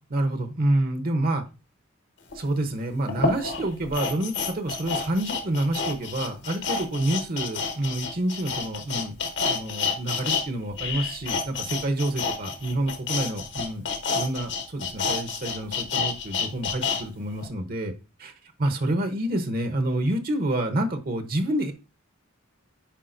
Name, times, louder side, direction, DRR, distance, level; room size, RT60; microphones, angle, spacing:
voice 1, 0.1-1.4 2.3-9.1 9.5-13.8 14.1-17.9 18.2-18.3 18.6-21.7, right 1 dB, 45° right, 6 dB, 0.8 m, -28 dB
sound 1, 2.3-2.4 3.1-10.5 10.7-17.0 17.4-17.5, left 5 dB, 60° left, 1.2 m, -29 dB
10.0 x 4.7 x 2.6 m, 0.31 s
head